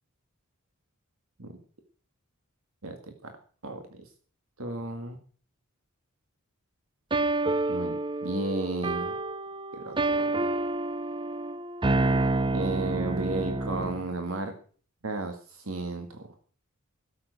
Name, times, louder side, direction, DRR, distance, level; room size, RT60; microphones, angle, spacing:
voice 1, 2.8-3.3 3.6-4.1 4.6-5.2 7.7-9.2 9.7-10.3 12.5-14.5 15.0-16.4, right 2 dB, 70° right, 6 dB, 1.9 m, -33 dB
sound 1, 7.1-14.1, right 2 dB, 25° right, 0.6 m, -28 dB
12.5 x 7.6 x 9.1 m, 0.43 s
head